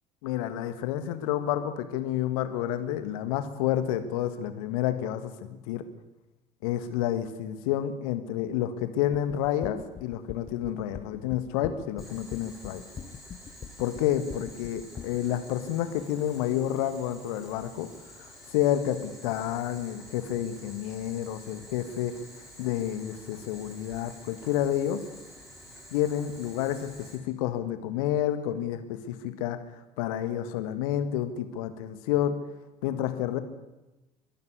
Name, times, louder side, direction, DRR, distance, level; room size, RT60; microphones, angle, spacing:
voice 1, 0.2-5.8 6.6-12.8 13.8-17.9 18.2-22.1 22.6-25.0 25.9-29.6 30.0-32.4 32.8-33.4, left 11 dB, 60° left, 10 dB, 1.9 m, -29 dB
sound 1, 9.1-15.2, left 7 dB, 30° left, 1.2 m, -42 dB
Boiling, 12.0-27.1, equal, ahead, 7.8 m, -50 dB
22.5 x 12.0 x 9.8 m, 1.0 s
figure-of-eight pair, 65°, 20 cm